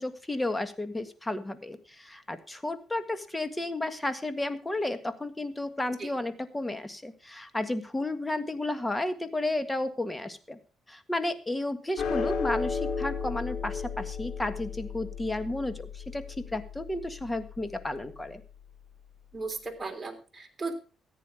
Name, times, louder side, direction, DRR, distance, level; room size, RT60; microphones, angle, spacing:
voice 1, 0.0-10.6 10.9-18.4, left 2 dB, 15° left, 10 dB, 1.7 m, -32 dB
sound 1, 12.0-18.5, left 5 dB, 80° left, 3.2 m, -34 dB
voice 2, 19.3-20.7, right 3 dB, 25° right, 3 dB, 3.3 m, -36 dB
14.5 x 9.9 x 4.9 m, 0.37 s
cardioid pair, 90°, 0 cm